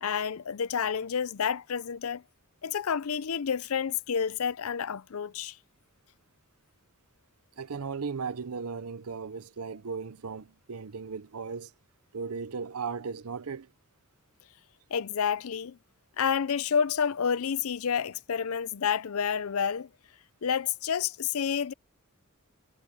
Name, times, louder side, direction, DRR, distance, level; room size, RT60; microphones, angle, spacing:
voice 1, 0.0-2.2 2.6-5.6 14.9-15.8 16.2-19.9 20.4-21.7, left 7 dB, 70° left, 0.5 m, -29 dB
voice 2, 7.6-11.7 12.1-13.7, right 5 dB, 80° right, 0.7 m, -36 dB
head